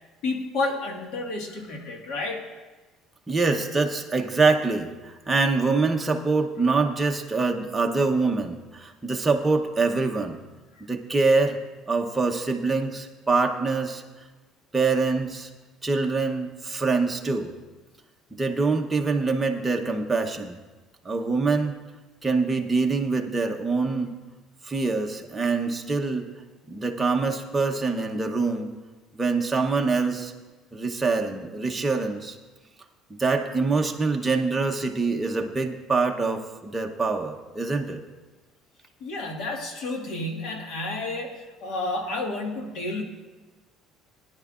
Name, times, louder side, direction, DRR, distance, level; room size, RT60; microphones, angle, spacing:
voice 1, 0.2-2.4 39.0-43.0, left 2 dB, 60° left, 2 dB, 1.6 m, -30 dB
voice 2, 3.3-10.4 10.9-11.6 11.9-14.0 14.7-15.5 15.8-17.5 18.3-20.6 21.0-21.8 22.2-24.1 24.6-26.3 26.7-28.7 29.2-30.3 30.7-32.4 33.2-38.0, right 4 dB, 10° right, 2 dB, 0.8 m, -25 dB
19.0 x 10.0 x 2.4 m, 1.2 s
cardioid pair, 160°, 0 cm